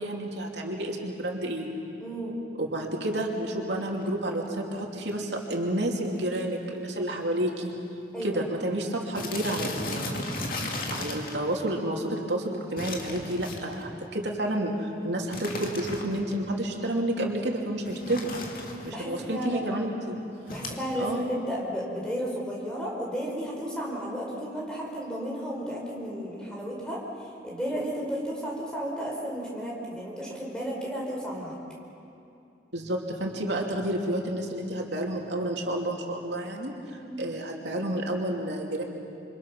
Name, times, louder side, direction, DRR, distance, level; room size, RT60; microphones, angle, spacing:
voice 1, 0.0-1.7 2.6-7.8 8.2-10.6 10.9-18.3 18.8-20.2 21.0-21.2 32.7-38.8, right 1 dB, 85° right, 0 dB, 2.8 m, -30 dB
voice 2, 2.0-2.4 8.1-8.4 18.0-18.2 18.9-19.7 20.5-31.6 37.0-37.2, equal, 5° left, -3 dB, 4.7 m, -33 dB
sound 1, 3.8-4.1 4.8-4.9 5.1-5.2 5.4-5.7 6.0-6.2 6.5-6.6 7.4-7.5 7.7-7.9 8.2-8.3 9.1-11.4 12.8-13.9 15.3-16.3 17.8-18.9 20.5-20.8, left 2 dB, 50° left, 2.5 m, -35 dB
28.0 x 25.0 x 6.2 m, 2.6 s
head